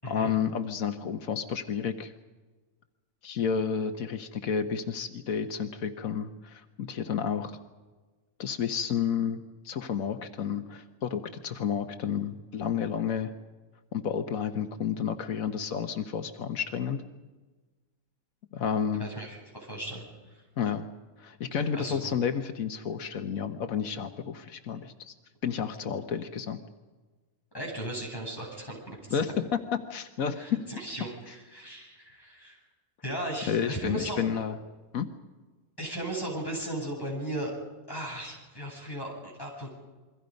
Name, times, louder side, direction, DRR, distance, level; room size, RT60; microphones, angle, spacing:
voice 1, 0.1-2.1 3.2-7.6 8.4-13.3 13.9-17.0 18.5-19.1 20.6-20.9 21.2-25.1 25.4-26.6 29.1-30.7 33.5-34.6 34.9-35.1, left 7 dB, 90° left, 8 dB, 1.5 m, -31 dB
voice 2, 19.0-20.4 21.5-22.1 27.5-29.2 30.4-32.6 33.0-34.4 35.8-37.5 37.9-39.7, right 1 dB, 15° left, -2 dB, 8.1 m, -37 dB
28.5 x 23.0 x 5.3 m, 1.3 s
omnidirectional pair, 1.4 m